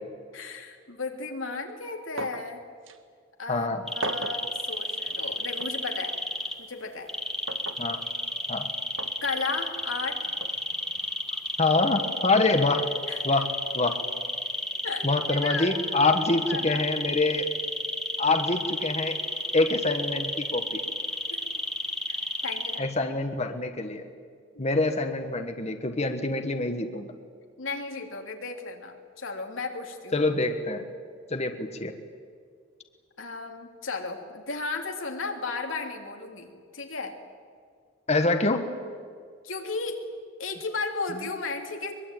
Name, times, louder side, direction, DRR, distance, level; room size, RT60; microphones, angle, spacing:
voice 1, 0.3-2.6 3.4-3.7 3.9-6.1 6.6-7.1 9.2-10.2 13.1-13.2 14.8-15.7 16.3-16.8 21.3-21.5 22.1-23.1 24.5-24.7 27.6-30.2 33.2-37.1 39.4-40.1 40.4-41.9, left 4 dB, 90° left, 3 dB, 3.0 m, -34 dB
sound 1, 2.2-2.5 2.9-3.0 4.0-4.5 5.6-5.8 7.5-7.8 9.0-9.2 10.4-10.6, right 2 dB, 85° right, 1.6 m, -35 dB
voice 2, 3.5-3.8 7.8-8.0 8.5-8.7 11.6-12.9 13.2-14.0 15.0-17.5 18.2-19.2 19.5-20.8 22.8-24.0 24.6-27.1 30.1-30.8 31.3-31.9 38.1-38.7, left 2 dB, 35° left, 6 dB, 1.4 m, -25 dB
sound 2, 3.9-6.5 7.1-22.8, left 1 dB, ahead, 1.7 m, -31 dB
23.0 x 22.5 x 9.1 m, 2.1 s
head